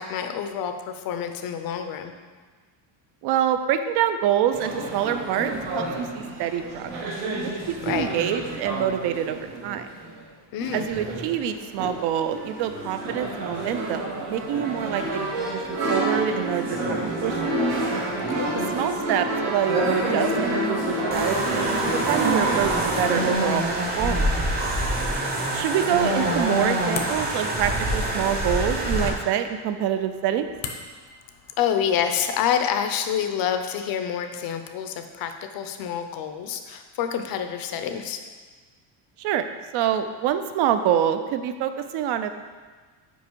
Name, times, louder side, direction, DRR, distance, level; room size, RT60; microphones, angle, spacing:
voice 1, 0.0-2.1 7.8-8.1 10.5-10.9 18.4-18.7 31.6-38.2, left 8 dB, 50° left, 7 dB, 0.5 m, -27 dB
voice 2, 3.2-7.1 7.4-9.9 10.7-15.3 15.5-17.4 18.5-23.6 24.0-24.3 25.5-30.5 39.2-39.4 39.7-42.3, right 10 dB, 55° right, 9 dB, 0.5 m, -26 dB
sound 1, 4.5-10.2 10.6-23.3, right 1 dB, 80° right, 1.6 m, -28 dB
sound 2, 21.1-29.1, right 1 dB, 20° right, 0.7 m, -25 dB
sound 3, 23.4-32.6, left 6 dB, 80° left, 0.9 m, -43 dB
5.4 x 4.9 x 4.6 m, 1.4 s
cardioid pair, 170°, 48 cm